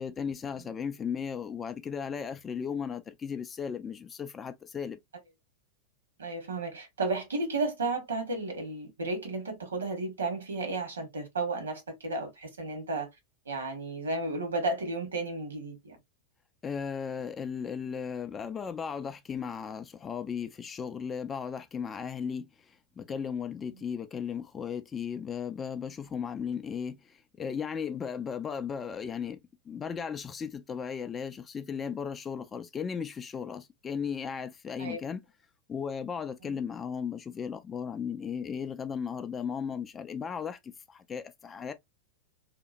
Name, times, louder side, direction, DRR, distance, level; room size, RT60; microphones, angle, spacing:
voice 1, 0.0-5.0 16.6-29.4 29.7-35.2 35.7-41.7, left 7 dB, 20° left, 0.3 m, -36 dB
voice 2, 6.2-13.1 13.5-16.0 34.8-35.0 36.4-36.6, right 3 dB, 70° right, 1.1 m, -33 dB
2.9 x 2.1 x 2.5 m
figure-of-eight pair, 90°, 0 cm